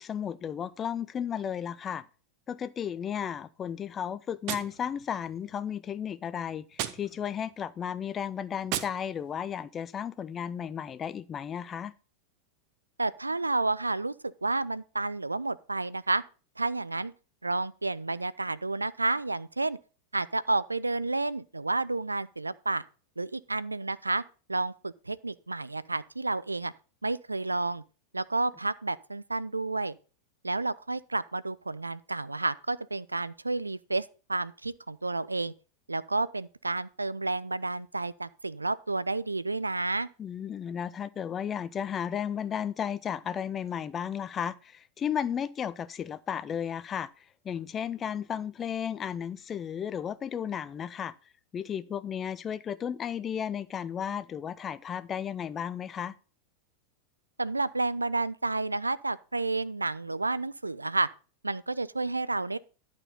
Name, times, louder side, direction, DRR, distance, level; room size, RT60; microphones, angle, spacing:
voice 1, 0.0-2.0 2.5-11.9 40.2-51.1 51.5-56.1, left 8 dB, 25° left, 0.4 m, -34 dB
Gunshot gunfire, 4.4-5.5 6.7-7.6 8.7-9.5, right 12 dB, 45° right, 0.7 m, -38 dB
voice 2, 13.0-14.1 14.4-16.2 16.6-17.1 17.4-19.8 20.1-22.8 23.2-24.2 24.5-26.7 27.0-27.8 28.1-30.0 30.4-35.5 35.9-40.1 57.4-61.1 61.4-62.6, right 3 dB, 80° right, 0.3 m, -30 dB
11.0 x 4.4 x 5.4 m
figure-of-eight pair, 90°, 0 cm